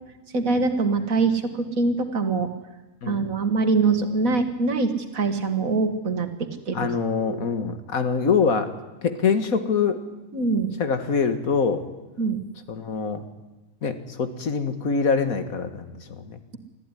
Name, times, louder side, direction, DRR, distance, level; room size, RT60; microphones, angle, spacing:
voice 1, 0.3-2.5 3.1-6.9 7.2-7.4 10.3-10.7 12.2-12.4, right 4 dB, 75° right, 8 dB, 2.2 m, -24 dB
voice 2, 3.0-3.3 6.7-8.7 9.0-10.0 10.8-11.9 12.7-13.2 13.8-16.4, left 5 dB, 80° left, 9 dB, 2.1 m, -24 dB
24.0 x 14.5 x 9.9 m, 1.1 s
omnidirectional pair, 1.4 m